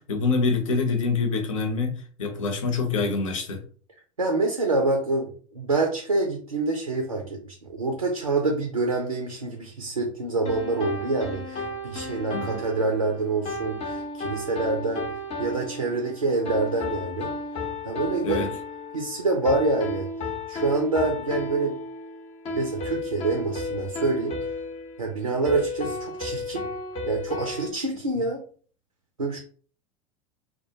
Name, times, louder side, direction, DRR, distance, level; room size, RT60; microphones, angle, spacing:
voice 1, 0.0-3.6 12.3-12.6 18.2-18.5, left 4 dB, 65° left, 0.7 m, -26 dB
voice 2, 4.2-15.1 15.4-17.3 17.8-18.5 18.9-20.1 20.5-21.8 22.6-24.4 25.0-26.7 27.1-28.4 29.2-29.4, right 3 dB, 90° right, 0.5 m, -26 dB
sound 1, 10.4-27.7, left 2 dB, 35° left, 0.6 m, -34 dB
2.2 x 2.1 x 2.8 m
figure-of-eight pair, 80°, 18 cm